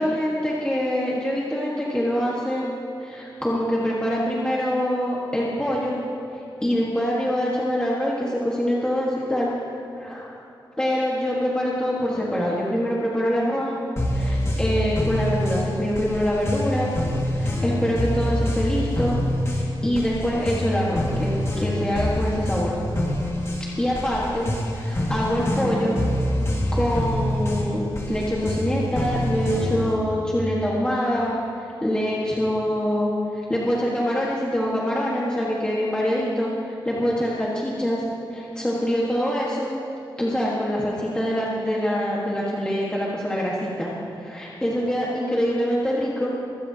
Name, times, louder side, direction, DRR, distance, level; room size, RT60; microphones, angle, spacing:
voice 1, 0.0-2.7 3.0-6.0 6.3-9.5 9.9-10.3 10.8-13.7 14.1-16.9 17.3-19.2 19.5-22.7 23.8-24.5 24.7-26.0 26.7-38.0 38.3-39.7 40.2-43.9 44.2-46.3, equal, 10° left, -6 dB, 1.5 m, -25 dB
sound 1, 14.0-30.0, left 1 dB, 35° left, 1.9 m, -26 dB
23.5 x 16.0 x 2.8 m, 2.7 s
wide cardioid pair, 175°, 9 cm